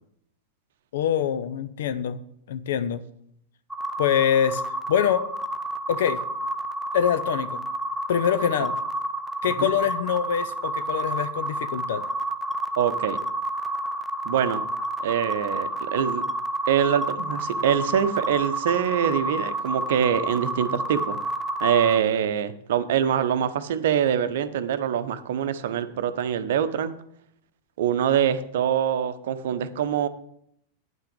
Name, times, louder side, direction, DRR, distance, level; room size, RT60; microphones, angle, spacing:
voice 1, 0.9-2.2 2.5-3.0 4.0-4.6 4.9-5.3 5.9-6.2 6.9-7.6 8.1-8.8 9.4-12.0, left 9 dB, 60° left, 12 dB, 0.7 m, -24 dB
sound 1, 3.7-22.0, right 1 dB, 5° right, 0.7 m, -30 dB
voice 2, 12.8-13.2 14.2-14.6 15.0-16.2 16.7-21.2 21.6-26.9 27.8-30.1, right 9 dB, 55° right, 11 dB, 0.7 m, -24 dB
9.1 x 5.8 x 6.6 m, 0.71 s
figure-of-eight pair, 90°, 0 cm